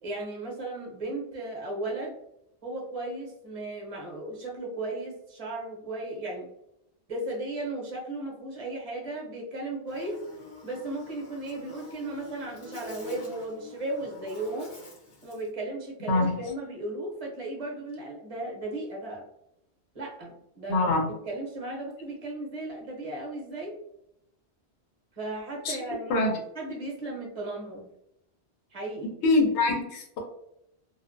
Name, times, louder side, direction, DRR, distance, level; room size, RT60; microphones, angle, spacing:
voice 1, 0.0-2.2 2.6-6.5 7.1-10.2 10.6-14.7 15.2-19.2 19.9-20.9 21.3-23.7 25.2-26.3 26.6-27.9 28.7-29.1, right 2 dB, 40° right, -2 dB, 0.7 m, -35 dB
Buzz, 9.9-15.5, left 2 dB, 50° left, 0.8 m, -47 dB
voice 2, 16.1-16.5 20.7-21.1 25.6-25.8 26.1-26.4 29.0-30.2, left 2 dB, 85° left, 1 dB, 0.9 m, -24 dB
2.4 x 2.1 x 2.4 m, 0.79 s
omnidirectional pair, 1.1 m